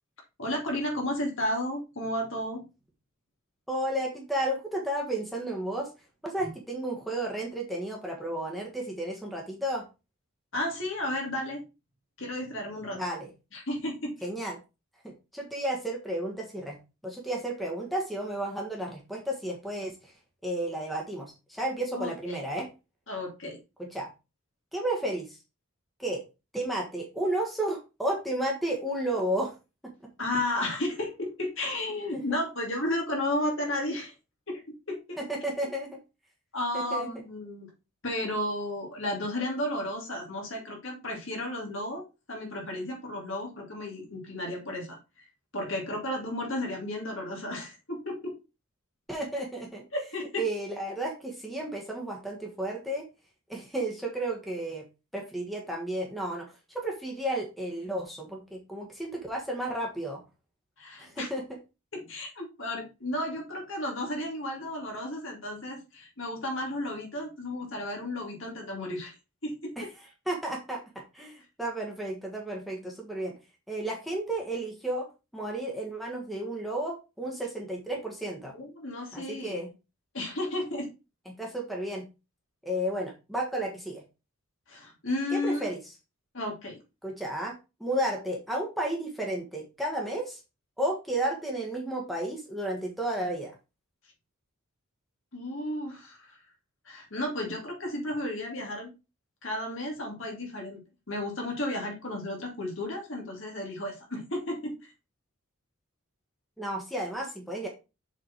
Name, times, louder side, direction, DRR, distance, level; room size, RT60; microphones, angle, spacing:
voice 1, 0.4-2.6 6.4-6.5 10.5-11.6 12.2-13.0 13.5-14.2 21.9-22.4 23.1-23.6 30.2-34.1 34.5-35.2 35.6-35.7 36.5-37.7 38.0-45.2 45.5-48.3 49.9-50.4 60.8-61.3 61.9-69.1 69.4-69.9 78.5-79.6 80.1-80.9 84.7-85.7 86.3-86.8 95.3-96.4 96.9-98.9 99.4-100.8 101.1-104.9, left 1 dB, 60° left, 1 dB, 2.7 m, -33 dB
voice 2, 3.7-5.9 6.2-9.9 12.9-13.3 14.2-14.6 15.0-16.8 17.0-20.1 20.4-22.7 23.8-24.1 24.7-25.4 26.0-26.2 26.5-29.5 29.8-29.9 32.1-32.2 35.2-35.9 36.7-37.1 49.1-49.8 50.4-53.0 53.5-54.8 55.1-60.2 61.0-61.4 69.8-69.9 70.2-70.8 71.1-73.3 73.7-75.1 75.3-78.5 79.1-79.7 81.2-82.0 82.6-84.0 85.3-85.9 87.0-87.5 87.8-90.4 90.8-93.5 106.6-107.7, right 1 dB, ahead, -1 dB, 1.5 m, -32 dB
7.0 x 4.3 x 4.5 m, 0.28 s
head